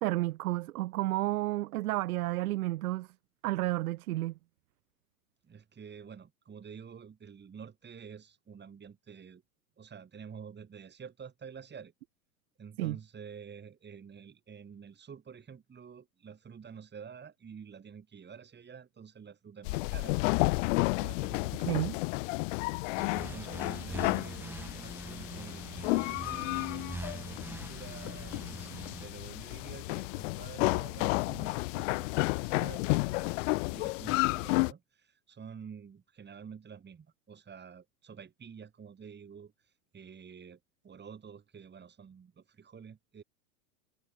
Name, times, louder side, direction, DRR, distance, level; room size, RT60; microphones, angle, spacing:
voice 1, 0.0-3.1 3.4-4.3 12.8-13.0 21.6-22.0, right 17 dB, 70° right, 0.7 m, -31 dB
voice 2, 5.4-9.4 9.8-11.9 12.6-20.3 21.0-21.6 23.0-33.4 33.7-43.2, right 6 dB, 20° right, 5.6 m, -49 dB
sound 1, 19.6-34.7, left 26 dB, 55° left, 0.8 m, -32 dB
sound 2, 23.0-29.0, right 3 dB, 5° right, 0.6 m, -43 dB
hypercardioid pair, 95°, 46 cm